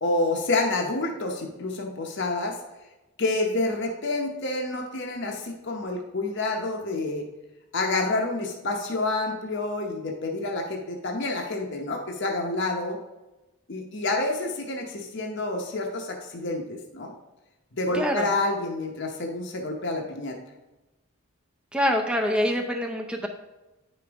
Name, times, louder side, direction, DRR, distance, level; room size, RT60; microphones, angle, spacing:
voice 1, 0.0-2.6 3.2-7.2 7.7-13.0 13.7-17.1 17.7-20.4, left 2 dB, 50° left, 1 dB, 0.8 m, -28 dB
voice 2, 17.9-18.3 21.7-23.3, equal, 5° right, 2 dB, 0.5 m, -25 dB
9.7 x 5.1 x 3.5 m, 1.1 s
head